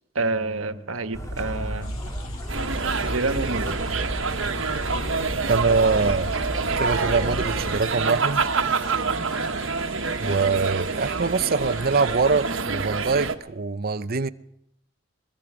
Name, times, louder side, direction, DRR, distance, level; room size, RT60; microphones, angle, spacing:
voice 1, 0.1-1.9 3.0-4.1, right 3 dB, 90° right, 1.4 m, -28 dB
sound 1, 1.1-7.8, equal, 15° left, 2.5 m, -32 dB
sound 2, 1.8-12.5, left 5 dB, 90° left, 2.8 m, -48 dB
sound 3, 2.5-13.4, right 4 dB, 70° right, 1.5 m, -27 dB
voice 2, 5.5-6.3 6.8-8.4 10.2-14.3, right 4 dB, 50° right, 0.8 m, -23 dB
23.0 x 22.0 x 5.0 m
head